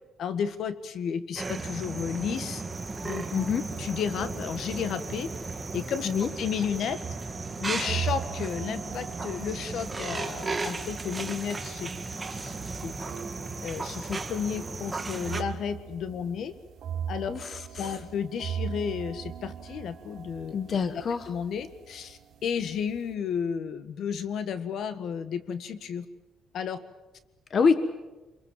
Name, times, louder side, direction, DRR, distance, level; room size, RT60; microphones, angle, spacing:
voice 1, 0.2-2.6 3.0-3.2 3.8-5.3 5.7-7.0 7.6-11.9 12.3-12.5 12.8-12.9 13.6-16.5 17.1-17.3 17.8-20.5 20.9-26.0 26.5-26.8, left 7 dB, 60° left, 12 dB, 1.6 m, -32 dB
sound 1, 1.4-15.4, right 3 dB, 20° right, 1.8 m, -35 dB
voice 2, 3.3-3.6 6.0-6.3 17.3-17.9 20.5-21.3 27.5-27.8, left 5 dB, 40° left, 11 dB, 1.3 m, -26 dB
sound 2, 7.0-23.1, right 8 dB, 65° right, 3.3 m, -40 dB
27.0 x 22.5 x 7.6 m, 1.1 s
cardioid pair, 130°, 0 cm